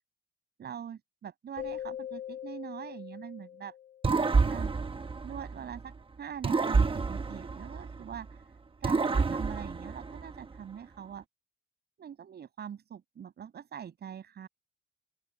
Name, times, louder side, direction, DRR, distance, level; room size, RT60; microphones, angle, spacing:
voice 1, 0.6-3.7 4.5-4.8 5.2-5.9 6.2-8.5 8.8-11.2 12.0-14.5, right 8 dB, 60° right, 7.6 m, -43 dB
Keyboard (musical), 1.6-4.3, left 10 dB, 40° left, 1.4 m, -42 dB
sound 1, 4.0-5.9 6.4-8.3 8.8-10.6, right 4 dB, 30° right, 1.3 m, -29 dB
open air
cardioid pair, 120°, 19 cm